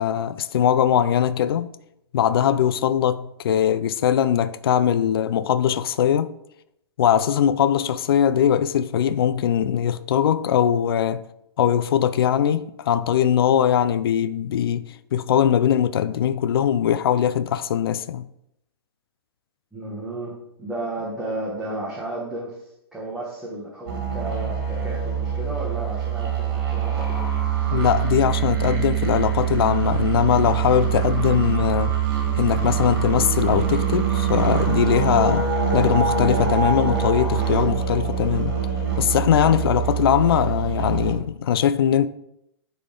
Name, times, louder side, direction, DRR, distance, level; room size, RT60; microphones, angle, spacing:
voice 1, 0.0-1.7 2.1-6.3 7.0-11.2 11.6-18.3 27.7-31.9 32.4-38.5 39.0-42.1, left 9 dB, 65° left, 0.4 m, -21 dB
voice 2, 19.7-27.4, right 1 dB, 5° right, 1.0 m, -33 dB
sound 1, 23.9-41.1, right 8 dB, 55° right, 2.3 m, -24 dB
9.4 x 4.2 x 3.8 m
hypercardioid pair, 170°, 14 cm